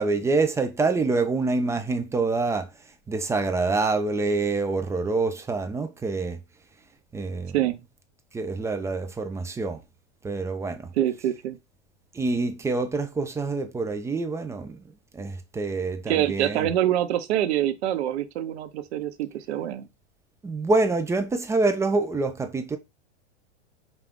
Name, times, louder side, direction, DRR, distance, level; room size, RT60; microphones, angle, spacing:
voice 1, 0.0-2.7 3.1-6.4 7.1-7.5 8.3-9.8 10.2-10.9 12.1-14.8 15.1-16.7 20.4-22.8, right 3 dB, 10° right, 0.4 m, -26 dB
voice 2, 11.0-11.6 16.1-19.9, right 12 dB, 65° right, 0.8 m, -25 dB
5.0 x 2.3 x 3.6 m
hypercardioid pair, 105°, 36 cm